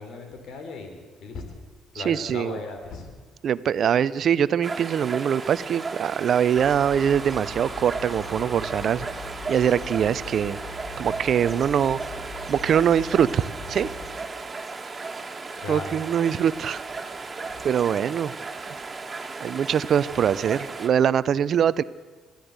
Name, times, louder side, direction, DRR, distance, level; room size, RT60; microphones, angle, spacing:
voice 1, 0.0-1.4 1.9-3.1 15.6-15.9 17.4-17.6, left 3 dB, 70° left, 6 dB, 3.9 m, -37 dB
voice 2, 1.9-2.6 3.4-9.1 9.5-10.6 11.0-12.0 12.5-13.9 15.7-16.8 17.6-18.3 19.4-21.8, right 8 dB, 60° right, 18 dB, 0.7 m, -23 dB
sound 1, 4.6-20.9, right 4 dB, 30° right, 2.9 m, -36 dB
sound 2, 6.6-14.1, left 2 dB, 20° left, 5.9 m, -40 dB
22.5 x 14.5 x 8.2 m, 1.4 s
supercardioid pair, 60°, 0 cm